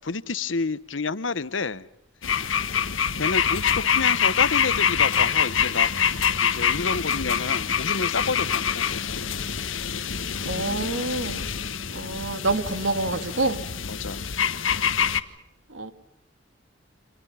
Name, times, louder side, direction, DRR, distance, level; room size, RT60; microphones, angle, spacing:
voice 1, 0.0-1.9 2.4-2.5 3.2-5.9 6.4-9.2 13.8-14.2, left 4 dB, 70° left, 16 dB, 1.1 m, -29 dB
sound 1, 2.2-15.2, left 8 dB, 85° left, 1.4 m, -25 dB
voice 2, 10.5-11.5 11.9-13.6 15.7-15.9, right 2 dB, 75° right, 9 dB, 2.4 m, -27 dB
29.5 x 27.0 x 5.7 m, 0.83 s
head